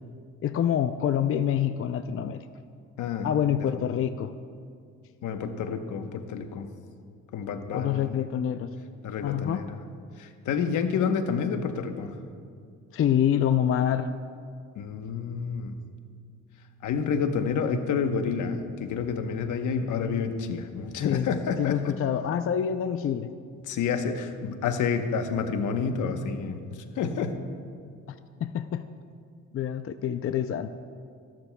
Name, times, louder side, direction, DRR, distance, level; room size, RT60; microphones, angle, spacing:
voice 1, 0.4-2.4 3.2-4.3 7.7-8.7 9.2-9.7 12.9-14.1 21.0-21.3 21.6-23.3 28.4-28.9 29.5-30.7, left 9 dB, 45° left, 10 dB, 0.5 m, -26 dB
voice 2, 3.0-3.8 5.2-6.7 7.3-8.1 9.0-9.8 10.2-12.1 14.8-15.8 16.8-22.0 23.7-27.4, left 6 dB, 80° left, 7 dB, 1.0 m, -29 dB
30.0 x 12.0 x 2.3 m, 2.3 s
cardioid pair, 90°, 30 cm